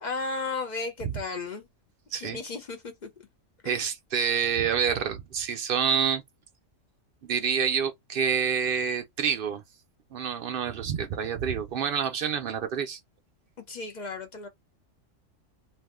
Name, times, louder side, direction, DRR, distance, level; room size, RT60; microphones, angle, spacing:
voice 1, 0.0-1.7 2.1-2.9 3.6-3.8 13.7-14.5, left 3 dB, 55° left, 0.5 m, -34 dB
voice 2, 3.6-6.2 7.2-9.6 10.1-13.0, right 7 dB, 60° right, 0.6 m, -27 dB
2.6 x 2.3 x 3.5 m
omnidirectional pair, 1.3 m